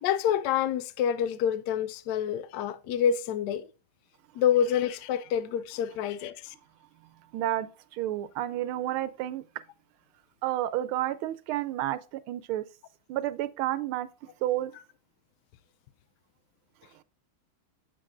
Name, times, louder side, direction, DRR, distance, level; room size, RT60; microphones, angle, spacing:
voice 1, 0.0-3.7 4.4-6.5, left 9 dB, 80° left, 0.9 m, -27 dB
voice 2, 7.3-9.4 10.4-12.6 13.1-14.1 14.4-14.7, right 13 dB, 80° right, 1.5 m, -30 dB
7.6 x 7.2 x 2.4 m
omnidirectional pair, 2.3 m